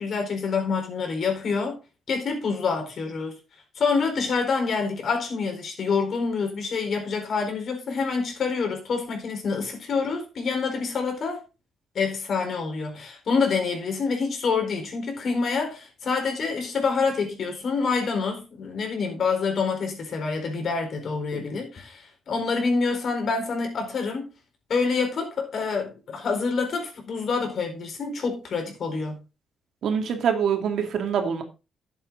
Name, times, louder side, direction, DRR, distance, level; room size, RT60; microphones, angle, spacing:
voice 1, 0.0-1.8 2.1-3.3 3.7-11.4 11.9-24.3 24.7-29.2, left 4 dB, 55° left, 4.4 m, -27 dB
voice 2, 29.8-31.4, right 7 dB, 70° right, 2.4 m, -24 dB
11.0 x 8.0 x 3.9 m
cardioid pair, 90°, 0 cm